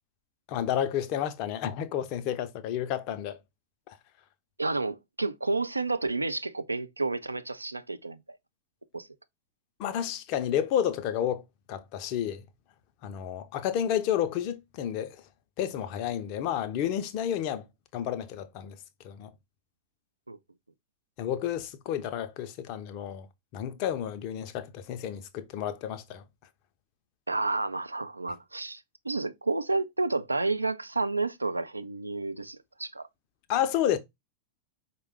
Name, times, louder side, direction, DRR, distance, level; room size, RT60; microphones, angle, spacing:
voice 1, 0.5-3.4 3.9-4.0 9.8-11.4 11.7-12.4 13.0-15.2 15.6-17.6 17.9-18.8 19.0-19.3 21.2-23.3 23.5-26.2 33.5-34.0, left 10 dB, 45° left, 0.6 m, -30 dB
voice 2, 4.6-8.2 8.9-9.1 20.3-20.4 27.3-33.1, right 3 dB, 80° right, 0.4 m, -30 dB
4.9 x 2.2 x 3.3 m
figure-of-eight pair, 90°, 0 cm